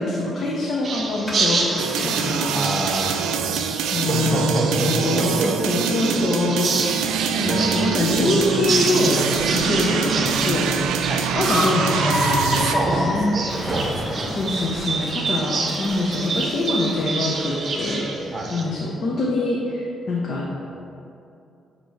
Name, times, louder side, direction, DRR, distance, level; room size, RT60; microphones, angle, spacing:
voice 1, 0.0-3.2 3.9-6.7 7.4-9.2 9.5-10.7 11.3-13.4 14.3-20.6, left 2 dB, 50° left, -3 dB, 0.8 m, -24 dB
sound 1, 0.8-18.6, right 3 dB, 45° right, 0.7 m, -29 dB
Car, 1.3-18.1, equal, 10° left, 1.3 m, -32 dB
sound 2, 1.8-12.7, right 7 dB, 85° right, 0.3 m, -24 dB
voice 2, 2.5-3.6 4.1-5.8 6.1-6.2 7.0-7.9 11.1-11.3 12.5-14.3 18.3-18.5, right 2 dB, 25° right, 0 dB, 1.0 m, -28 dB
8.2 x 3.0 x 4.4 m, 2.7 s
cardioid pair, 90°, 0 cm